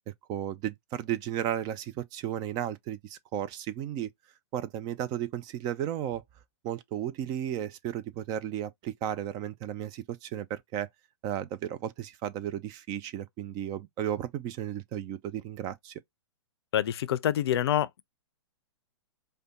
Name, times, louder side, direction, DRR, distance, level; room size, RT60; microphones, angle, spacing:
voice 1, 0.3-4.1 4.5-6.2 6.6-10.9 11.2-16.0, right 11 dB, 25° right, 0.4 m, -34 dB
voice 2, 16.7-18.0, left 11 dB, 60° left, 0.5 m, -26 dB
4.9 x 2.2 x 2.8 m
hypercardioid pair, 120°, 15 cm